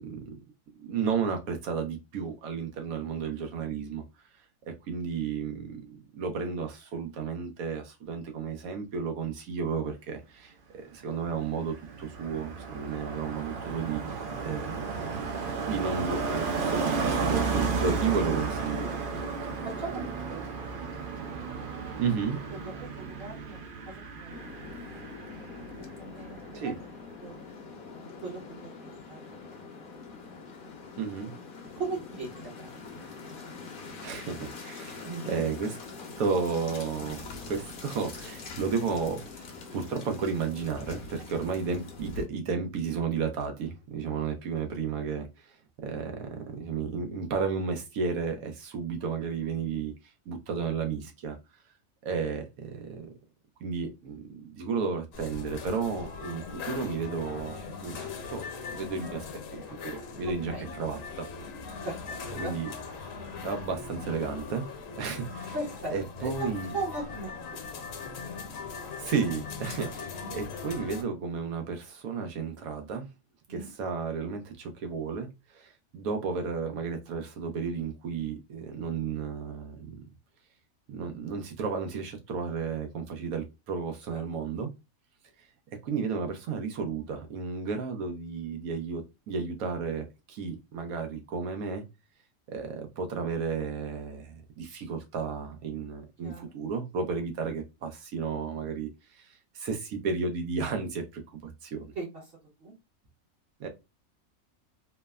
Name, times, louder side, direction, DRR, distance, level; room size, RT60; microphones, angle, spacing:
voice 1, 0.8-4.0 4.7-15.1 15.6-18.9 22.0-22.4 26.5-26.8 31.0-31.3 34.0-35.7 36.2-39.2 39.7-49.9 50.3-51.4 52.0-53.1 53.6-59.3 59.5-61.3 62.3-62.7 63.4-64.7 65.0-65.5 65.9-66.7 69.0-73.1 73.5-80.0 80.9-84.7 85.8-91.8 92.5-101.9 103.6-103.7, right 5 dB, 85° right, 1.2 m, -33 dB
Car passing by, 11.2-26.0 26.2-26.5, right 4 dB, 70° right, 0.5 m, -33 dB
voice 2, 19.6-20.7 22.5-24.8 25.4-25.6 26.0-26.7 27.2-27.4 27.9-30.1 31.8-33.1 35.0-35.3 60.5-60.7 61.8-62.6 65.5-67.6 69.9-70.1 73.5-73.7 84.1-84.2 96.2-96.4 101.9-102.2 102.6-102.7, right 3 dB, 45° right, 1.0 m, -39 dB
sound 1, 24.3-42.2, left 4 dB, 55° left, 0.6 m, -44 dB
sound 2, 55.1-71.0, left 5 dB, 70° left, 1.0 m, -40 dB
3.2 x 2.1 x 2.2 m
omnidirectional pair, 1.5 m